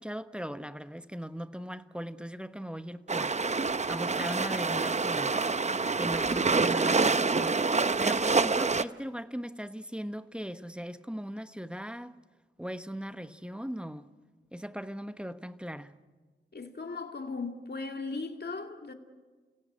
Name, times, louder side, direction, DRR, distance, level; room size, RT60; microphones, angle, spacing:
voice 1, 0.0-3.4 3.9-5.4 6.0-7.6 8.0-12.2 12.6-14.1 14.5-15.9, equal, 5° right, 1.1 m, -39 dB
sound 1, 3.1-8.8, right 4 dB, 35° right, 0.7 m, -27 dB
voice 2, 16.5-18.9, left 3 dB, 50° left, 2.4 m, -37 dB
29.5 x 16.5 x 8.7 m
cardioid pair, 55°, 21 cm